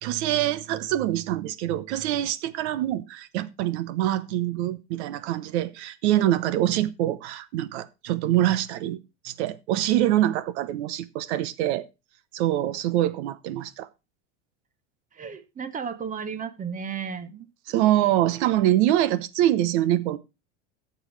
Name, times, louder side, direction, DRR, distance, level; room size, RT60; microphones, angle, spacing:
voice 1, 0.0-9.0 9.2-11.9 12.3-13.9 17.7-20.2, right 13 dB, 70° right, 1.1 m, -24 dB
voice 2, 15.1-17.5, right 6 dB, 20° right, 1.0 m, -34 dB
14.0 x 7.3 x 3.3 m
supercardioid pair, 130°, 35 cm